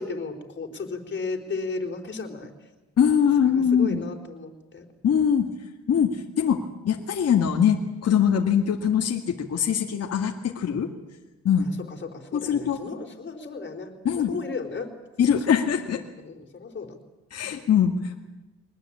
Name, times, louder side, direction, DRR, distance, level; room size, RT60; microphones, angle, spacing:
voice 1, 0.0-2.7 3.4-4.9 11.6-14.9 15.3-15.5 16.2-17.0, left 4 dB, 40° left, 3 dB, 4.3 m, -35 dB
voice 2, 3.0-4.0 5.0-5.5 5.9-10.9 11.4-11.7 12.3-12.8 14.0-14.3 15.2-16.0 17.3-18.2, left 8 dB, 55° left, 1 dB, 2.2 m, -22 dB
23.5 x 20.0 x 8.8 m, 1.1 s
cardioid pair, 90°, 30 cm